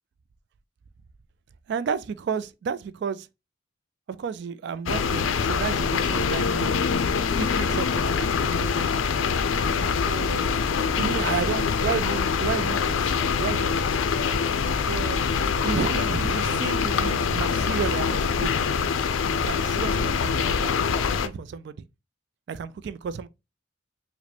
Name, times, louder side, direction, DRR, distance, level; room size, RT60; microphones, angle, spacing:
voice 1, 1.7-3.3 4.1-6.8 7.1-8.9 10.1-10.6 11.0-13.9 14.9-15.2 15.6-18.5 19.3-21.9 22.5-23.3, right 6 dB, 60° right, 0.3 m, -32 dB
sound 1, 4.9-21.3, left 6 dB, 90° left, 0.4 m, -24 dB
4.9 x 2.1 x 3.2 m
head